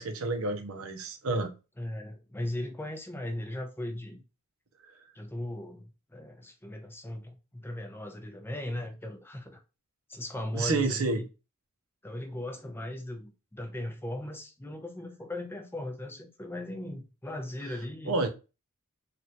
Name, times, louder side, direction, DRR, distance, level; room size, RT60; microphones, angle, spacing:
voice 1, 0.0-1.5 10.5-11.2 18.1-18.3, right 3 dB, 70° right, 0.7 m, -29 dB
voice 2, 1.8-4.2 5.1-9.6 10.1-11.3 12.0-18.3, left 1 dB, 10° left, 0.6 m, -38 dB
3.3 x 2.5 x 2.8 m
head